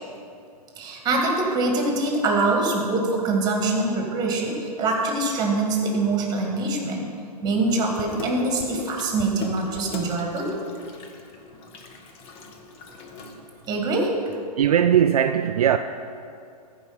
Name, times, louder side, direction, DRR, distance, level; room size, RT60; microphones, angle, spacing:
voice 1, 0.8-7.1 7.4-10.5 13.7-14.2, right 2 dB, 20° right, 1.8 m, -24 dB
Water tap faucet / Sink (filling or washing), 7.7-13.8, left 3 dB, 30° left, 1.0 m, -40 dB
voice 2, 14.6-15.8, right 9 dB, 65° right, 0.4 m, -19 dB
14.5 x 4.9 x 5.6 m
figure-of-eight pair, 115°, 21 cm